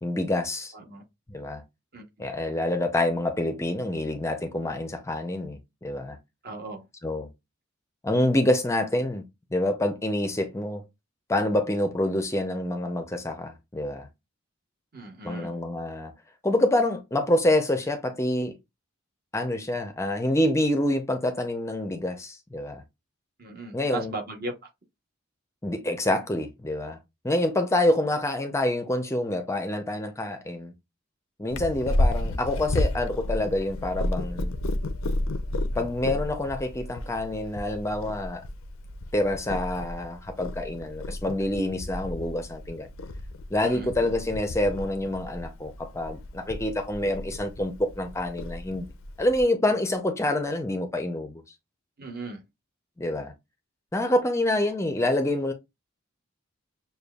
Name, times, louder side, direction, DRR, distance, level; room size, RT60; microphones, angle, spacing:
voice 1, 0.0-0.7 1.3-1.6 2.2-6.2 7.0-7.3 8.0-9.2 9.5-10.8 11.3-14.1 15.2-16.1 16.4-18.6 19.3-22.8 23.7-24.1 25.6-27.0 27.2-30.7 31.4-34.5 35.8-38.4 39.1-42.9 43.5-48.9 49.2-51.4 53.0-53.3 53.9-55.5, left 1 dB, 15° left, 0.5 m, -27 dB
voice 2, 0.7-1.0 1.9-2.3 6.4-6.8 14.9-15.6 23.4-24.7 43.6-43.9 52.0-52.4, right 2 dB, 45° right, 1.0 m, -37 dB
Purr, 31.5-49.4, left 1 dB, 75° left, 0.5 m, -32 dB
6.7 x 2.2 x 2.3 m
head